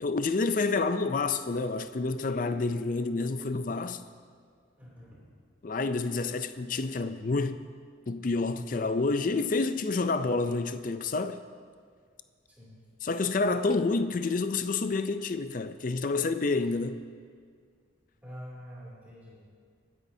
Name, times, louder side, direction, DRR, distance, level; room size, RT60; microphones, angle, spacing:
voice 1, 0.0-4.0 5.6-7.6 8.1-11.4 13.0-17.0, left 3 dB, 45° left, 0.4 m, -28 dB
voice 2, 4.8-5.4 12.6-12.8 16.6-16.7 18.2-19.6, equal, 10° right, 2.8 m, -47 dB
25.5 x 9.8 x 2.7 m
head